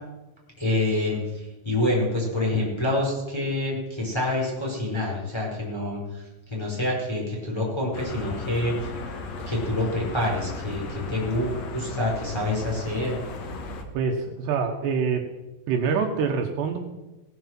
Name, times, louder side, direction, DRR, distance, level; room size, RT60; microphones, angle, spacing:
voice 1, 0.6-6.2 6.5-8.9 9.5-13.2, left 1 dB, 5° left, -4 dB, 4.3 m, -27 dB
sound 1, 7.9-13.8, left 3 dB, 65° left, 1.8 m, -36 dB
voice 2, 13.9-15.2 15.7-16.8, right 6 dB, 75° right, 4 dB, 3.2 m, -25 dB
18.0 x 7.8 x 7.5 m, 1.1 s
omnidirectional pair, 5.1 m